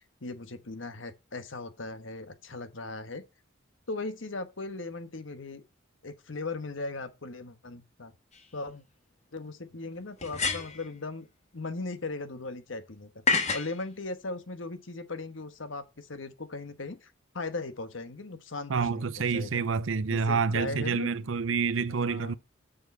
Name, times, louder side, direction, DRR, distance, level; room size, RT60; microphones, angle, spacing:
voice 1, 0.0-3.2 3.9-5.6 6.0-8.1 8.5-8.8 9.3-11.3 11.5-13.1 13.5-19.7 20.1-21.1 22.0-22.4, left 3 dB, 70° left, 1.3 m, -38 dB
sound 1, 8.3-8.4 10.2-10.9 13.3-13.7, left 4 dB, 35° left, 1.4 m, -28 dB
voice 2, 18.7-22.3, right 5 dB, 70° right, 0.6 m, -28 dB
7.0 x 6.4 x 5.3 m
head